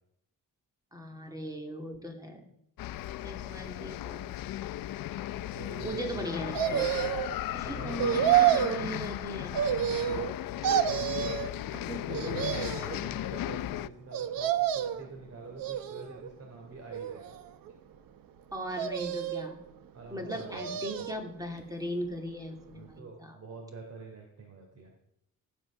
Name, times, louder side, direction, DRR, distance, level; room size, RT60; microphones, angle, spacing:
voice 1, 0.9-2.5 3.2-4.3 5.8-6.9 7.5-9.6 11.7-12.1 18.5-19.6 20.1-23.4, equal, 10° right, 3 dB, 2.7 m, -38 dB
sound 1, 2.8-13.9, left 14 dB, 90° left, 0.6 m, -36 dB
voice 2, 5.5-6.6 7.2-8.4 9.5-10.8 11.2-11.4 12.0-17.3 19.9-21.0 22.7-24.9, right 3 dB, 50° right, 1 dB, 3.4 m, -45 dB
sound 2, 6.5-7.4 8.0-8.8 9.5-10.3 10.6-11.5 12.1-12.9 14.1-15.1 15.6-16.3 16.9-17.7 18.7-19.5 20.3-21.2 21.6-21.7, right 11 dB, 85° right, 1.1 m, -29 dB
15.5 x 12.0 x 6.4 m, 0.79 s
cardioid pair, 130°, 33 cm